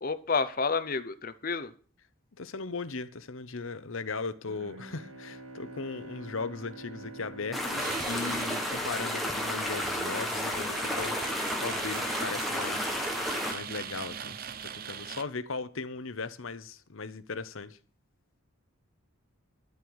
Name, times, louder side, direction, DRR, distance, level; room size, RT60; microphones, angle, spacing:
voice 1, 0.0-1.7, left 4 dB, 40° left, 0.7 m, -30 dB
voice 2, 2.4-13.1 13.4-17.8, left 4 dB, 65° left, 0.8 m, -38 dB
Bowed string instrument, 4.4-9.4, right 2 dB, 75° right, 1.9 m, -47 dB
sound 1, 7.5-13.5, left 1 dB, ahead, 1.6 m, -32 dB
sound 2, 7.7-15.2, right 8 dB, 40° right, 0.6 m, -41 dB
13.0 x 4.7 x 8.8 m
head